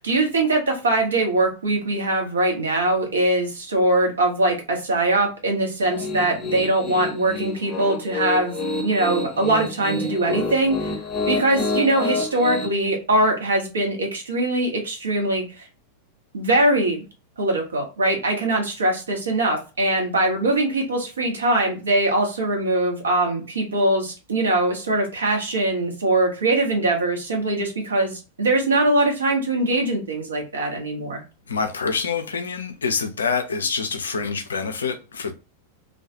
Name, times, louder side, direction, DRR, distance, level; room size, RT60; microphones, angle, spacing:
voice 1, 0.0-8.5 8.8-10.9 11.3-15.4 16.3-17.0 17.4-31.2, right 2 dB, 70° right, 0.8 m, -22 dB
Piano, 5.8-12.7, left 3 dB, 20° left, 0.8 m, -28 dB
voice 2, 31.5-35.3, left 5 dB, 70° left, 0.4 m, -26 dB
2.3 x 2.2 x 2.7 m
figure-of-eight pair, 90°, 0 cm